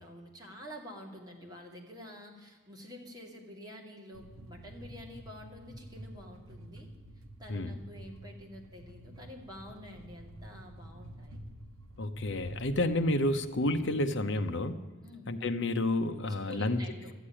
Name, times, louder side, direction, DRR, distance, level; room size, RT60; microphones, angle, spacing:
voice 1, 0.0-6.9 7.4-11.4 15.0-15.3 16.4-17.1, left 1 dB, 20° right, 0 dB, 2.2 m, -48 dB
sound 1, 4.1-13.9, right 1 dB, 65° right, 1.3 m, -49 dB
voice 2, 12.0-14.8 15.3-16.8, left 1 dB, 60° left, 8 dB, 0.9 m, -30 dB
12.5 x 8.3 x 9.9 m, 1.3 s
head